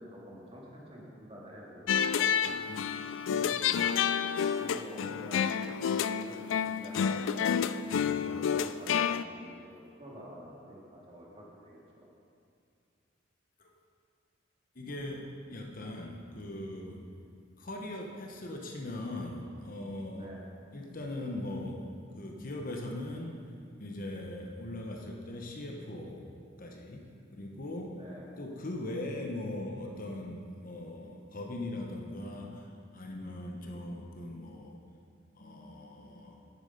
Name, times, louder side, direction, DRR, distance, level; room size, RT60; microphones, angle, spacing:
voice 1, 0.0-2.4 3.3-7.4 8.2-12.1 20.1-20.4 27.9-28.3, equal, 30° right, -4 dB, 2.0 m, -48 dB
sound 1, 1.9-9.2, left 7 dB, 75° left, 0.3 m, -29 dB
voice 2, 14.7-17.1 17.6-20.3 20.7-21.9 22.2-23.4 23.8-26.3 26.6-27.0 27.3-28.0 28.4-34.8 35.3-36.4, left 1 dB, 45° left, 1 dB, 1.0 m, -40 dB
9.9 x 8.4 x 5.4 m, 2.3 s
head